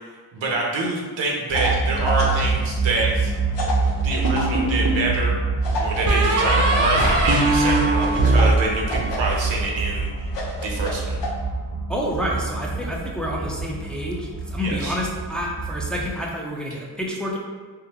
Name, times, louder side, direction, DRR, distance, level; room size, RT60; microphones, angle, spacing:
voice 1, 0.3-3.3 4.0-5.4 5.8-10.3 10.6-11.2 14.6-15.0, right 2 dB, 85° right, -2 dB, 0.8 m, -26 dB
sound 1, 1.5-2.5 3.5-4.5 5.6-6.9 8.0-9.4 10.3-11.3, left 1 dB, 70° left, 0.7 m, -30 dB
sound 2, 1.5-16.1, right 3 dB, 35° left, 0.9 m, -26 dB
sound 3, 4.2-5.1 6.1-9.4, right 2 dB, 40° right, 0.6 m, -20 dB
voice 2, 11.9-17.4, equal, ahead, -3 dB, 0.6 m, -28 dB
3.6 x 2.2 x 2.8 m, 1.5 s
cardioid pair, 55°, 44 cm